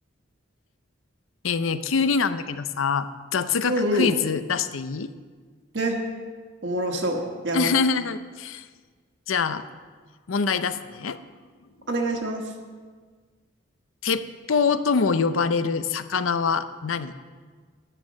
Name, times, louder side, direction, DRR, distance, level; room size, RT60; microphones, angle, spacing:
voice 1, 1.4-5.1 7.5-8.7 9.3-9.6 10.3-11.2 14.0-17.1, left 5 dB, 80° left, 12 dB, 0.6 m, -24 dB
voice 2, 3.7-4.1 5.7-6.0 6.6-7.7 11.9-12.5, right 1 dB, 60° right, 1 dB, 1.4 m, -25 dB
11.0 x 9.2 x 6.4 m, 1.5 s
head